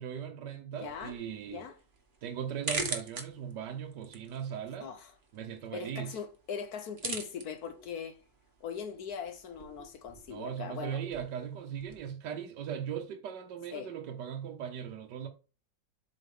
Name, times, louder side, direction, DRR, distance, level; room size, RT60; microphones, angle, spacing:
voice 1, 0.0-1.6 2.2-4.9 5.3-6.2 10.3-15.3, right 8 dB, 70° right, 1.3 m, -38 dB
voice 2, 0.8-1.2 1.5-1.8 4.8-5.1 5.7-8.2 8.6-11.0 13.7-13.9, left 7 dB, 60° left, 1.1 m, -40 dB
sound 1, 0.8-12.1, right 3 dB, 35° right, 1.1 m, -44 dB
7.8 x 5.0 x 3.6 m
omnidirectional pair, 2.0 m